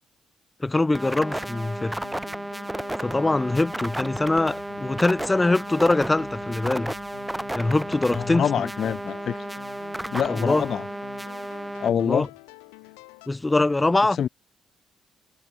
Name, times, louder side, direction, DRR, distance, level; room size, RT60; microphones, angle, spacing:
voice 1, 0.6-2.0 3.0-6.9 7.5-8.7 10.3-10.6 11.9-12.3 13.3-14.2, left 2 dB, 20° left, 0.9 m, -23 dB
sound 1, 0.9-11.9, right 1 dB, 10° right, 2.6 m, -33 dB
sound 2, 1.3-13.3, left 40 dB or more, 75° left, 5.6 m, -48 dB
voice 2, 8.1-9.4 10.1-10.8 11.8-12.3 14.2-14.3, left 9 dB, 55° left, 0.3 m, -25 dB
figure-of-eight pair, 45°, 0 cm